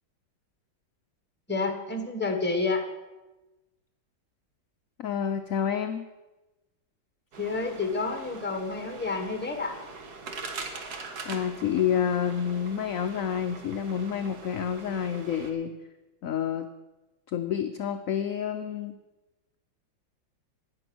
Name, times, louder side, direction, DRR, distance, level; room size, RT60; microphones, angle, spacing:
voice 1, 1.5-2.8 7.4-9.7, left 3 dB, 5° left, 5 dB, 1.1 m, -29 dB
voice 2, 5.0-6.0 11.3-15.7 16.2-16.7 17.3-19.0, left 8 dB, 65° left, 8 dB, 0.8 m, -29 dB
sound 1, 7.3-15.5, right 4 dB, 60° right, 1.8 m, -42 dB
19.0 x 7.0 x 6.1 m, 1.1 s
omnidirectional pair, 2.0 m